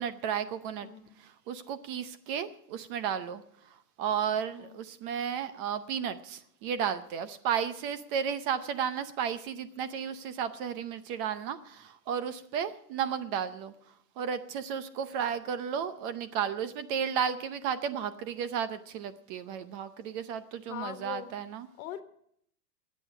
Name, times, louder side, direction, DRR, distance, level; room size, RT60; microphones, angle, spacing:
voice 1, 0.0-0.9 1.2-3.4 4.0-13.7 14.2-21.7, right 8 dB, 35° right, 13 dB, 0.7 m, -33 dB
voice 2, 0.8-1.1 4.5-4.8 20.7-21.3 21.8-22.0, left 13 dB, 60° left, 10 dB, 1.5 m, -41 dB
25.0 x 8.5 x 4.9 m, 0.68 s
supercardioid pair, 145°, 48 cm